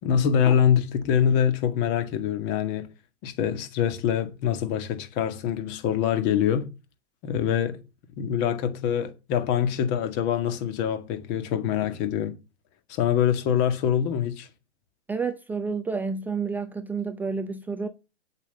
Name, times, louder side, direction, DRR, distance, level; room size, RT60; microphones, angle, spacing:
voice 1, 0.0-2.9 3.2-6.7 7.2-7.8 8.2-12.4 12.9-14.5, left 8 dB, 30° left, 2.1 m, -24 dB
voice 2, 15.1-17.9, right 5 dB, 5° right, 0.5 m, -30 dB
9.2 x 8.2 x 6.8 m
hypercardioid pair, 140°, 35 cm